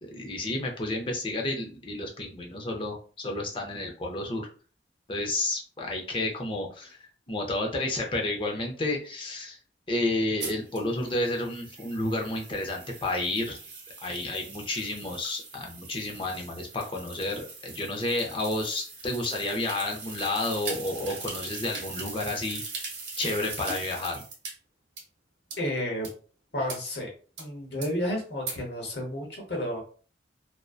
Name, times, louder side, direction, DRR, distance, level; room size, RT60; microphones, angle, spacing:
voice 1, 0.0-4.5 5.1-9.6 9.9-13.6 14.0-22.6 23.2-24.2, left 2 dB, 30° left, 1 dB, 0.5 m, -31 dB
sound 1, 10.4-24.5 25.0-25.1 25.5-25.6 26.0-26.1 26.7-26.8 27.4-27.5 27.8-27.9 28.5-28.6, right 4 dB, 70° right, 1.1 m, -40 dB
voice 2, 25.6-26.1 26.5-27.1 27.4-29.8, left 1 dB, 70° left, 1 dB, 0.9 m, -31 dB
2.5 x 2.1 x 2.3 m, 0.39 s
head